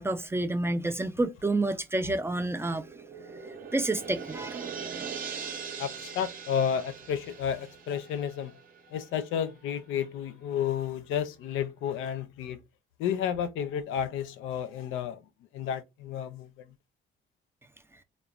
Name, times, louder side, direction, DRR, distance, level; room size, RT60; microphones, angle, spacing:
voice 1, 0.0-2.9 3.7-4.7, right 2 dB, 10° right, 0.3 m, -29 dB
sound 1, 2.4-9.2 9.5-9.6, right 6 dB, 45° right, 0.6 m, -41 dB
voice 2, 5.8-8.5 8.9-12.6 13.0-15.2 15.5-16.5, left 8 dB, 85° left, 0.4 m, -31 dB
3.0 x 2.1 x 2.3 m
cardioid pair, 90°, 20 cm